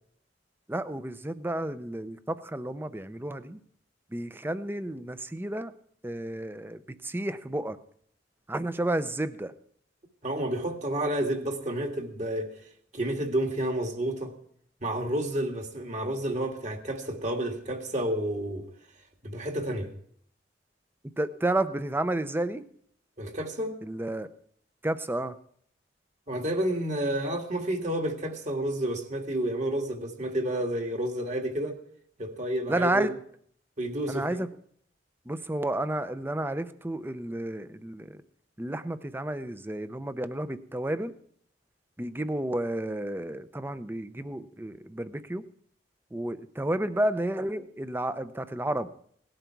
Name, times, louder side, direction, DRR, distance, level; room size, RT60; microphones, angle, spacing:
voice 1, 0.7-3.6 4.1-5.7 6.0-7.8 8.5-9.5 21.2-22.6 23.8-24.3 24.8-25.4 32.7-33.2 34.1-34.5 35.3-38.2 38.6-41.1 42.0-45.4 46.1-48.9, right 1 dB, 10° right, 13 dB, 0.6 m, -31 dB
voice 2, 10.2-12.5 12.9-14.3 14.8-18.6 19.2-19.9 23.2-23.7 26.3-31.8 32.2-33.1 33.8-34.3, right 1 dB, 40° right, 4 dB, 1.9 m, -30 dB
18.0 x 12.0 x 4.6 m, 0.64 s
head